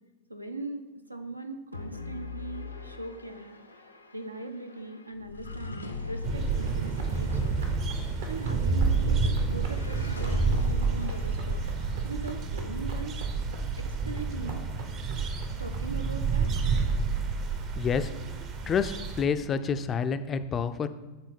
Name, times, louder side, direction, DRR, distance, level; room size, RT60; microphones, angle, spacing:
voice 1, 0.3-0.8 1.1-3.6 4.1-7.7 8.3-9.2 9.5-11.6 12.0-13.2 13.8-14.6 15.6-16.6, right 3 dB, 85° right, 6 dB, 0.5 m, -40 dB
sound 1, 1.7-13.0, left 2 dB, 80° left, 0.5 m, -41 dB
sound 2, 6.2-19.2, right 4 dB, 35° right, 0.6 m, -29 dB
Run, 6.5-18.7, right 3 dB, 60° right, 0.9 m, -47 dB
voice 2, 17.8-18.1 18.7-20.9, left 6 dB, 25° left, 11 dB, 0.3 m, -28 dB
7.0 x 3.6 x 4.1 m, 1.2 s
figure-of-eight pair, 90°, 0 cm